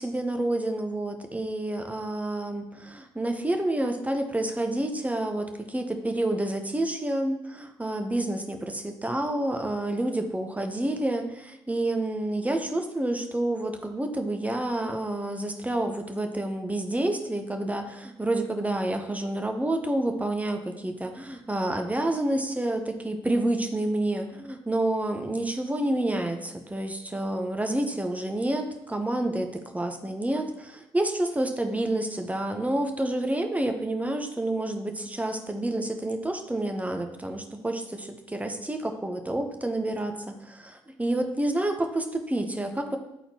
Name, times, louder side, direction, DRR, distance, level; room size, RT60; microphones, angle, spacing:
voice 1, 0.0-43.0, right 1 dB, 10° right, 5 dB, 0.9 m, -29 dB
11.0 x 4.1 x 2.9 m, 0.83 s
hypercardioid pair, 45°, 15 cm